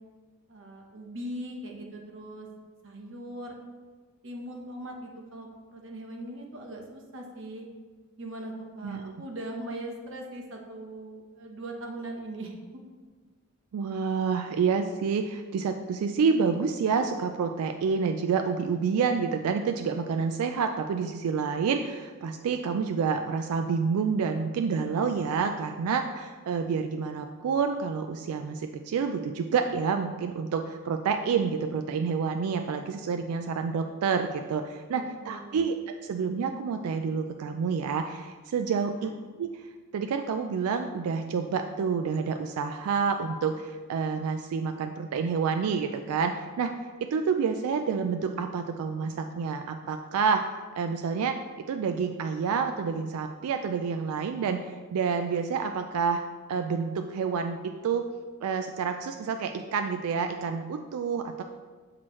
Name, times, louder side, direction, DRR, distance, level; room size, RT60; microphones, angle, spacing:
voice 1, 0.5-2.5 2.8-3.6 4.2-7.7 8.2-12.8 34.9-35.7 38.8-39.1, right 1 dB, 55° right, 0 dB, 0.9 m, -40 dB
voice 2, 13.7-35.8 36.0-39.1 39.4-46.7 47.0-58.1 58.4-61.4, right 5 dB, 85° right, 6 dB, 0.3 m, -28 dB
6.1 x 5.9 x 3.1 m, 1.4 s
head